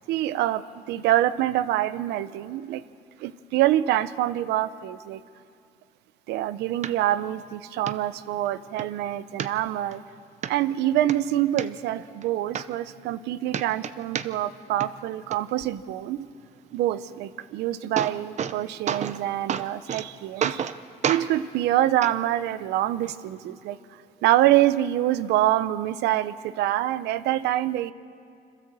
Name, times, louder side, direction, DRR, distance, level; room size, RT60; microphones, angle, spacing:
voice 1, 0.1-2.8 3.2-5.2 6.3-10.0 10.5-16.3 16.7-20.7 21.1-27.9, right 13 dB, 85° right, 14 dB, 0.7 m, -25 dB
sound 1, 6.8-6.9 7.4-7.5 7.9-8.0 8.4-8.9 9.4-10.0 10.4-10.5 10.9-11.7 12.2-12.3 12.5-13.2 13.5-14.6 14.8-15.4 17.4-17.5 17.7-18.6 18.9-19.2 19.5-20.1 20.4-20.8 21.0-21.3 22.0-22.1 23.0-23.1, right 8 dB, 45° right, 0.7 m, -29 dB
26.0 x 13.5 x 7.7 m, 2.4 s
cardioid pair, 110°, 17 cm